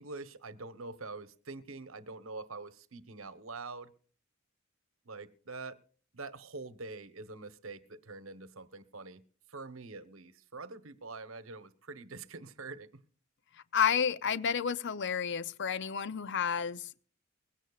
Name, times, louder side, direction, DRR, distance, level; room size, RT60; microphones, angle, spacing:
voice 1, 0.0-3.9 5.0-5.8 6.1-9.2 9.5-13.0, right 3 dB, 75° right, 1.2 m, -45 dB
voice 2, 13.7-17.0, left 7 dB, 60° left, 0.6 m, -31 dB
21.5 x 16.5 x 2.4 m
head